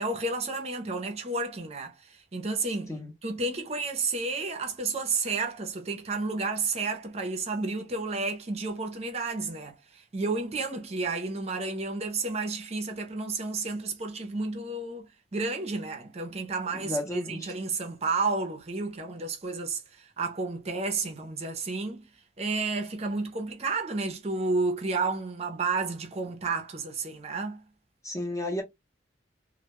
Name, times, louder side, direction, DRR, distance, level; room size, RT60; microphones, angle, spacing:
voice 1, 0.0-2.9 3.2-22.1 22.4-27.6, right 3 dB, 35° right, 0.5 m, -31 dB
voice 2, 16.7-17.5 28.0-28.6, left 1 dB, 15° left, 0.6 m, -33 dB
2.1 x 2.1 x 2.8 m
head